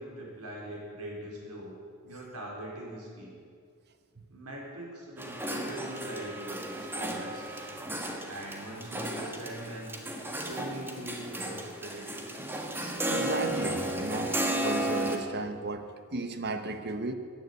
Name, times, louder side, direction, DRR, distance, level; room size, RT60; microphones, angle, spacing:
voice 1, 0.0-1.7 2.0-3.3 4.3-7.7 8.3-9.9 10.5-12.5, right 1 dB, 80° right, -2 dB, 4.5 m, -42 dB
sound 1, 5.2-15.2, right 1 dB, 10° right, 1.5 m, -34 dB
voice 2, 13.1-14.4 14.6-17.1, right 2 dB, 50° right, 8 dB, 1.2 m, -34 dB
16.0 x 10.5 x 8.3 m, 2.1 s
head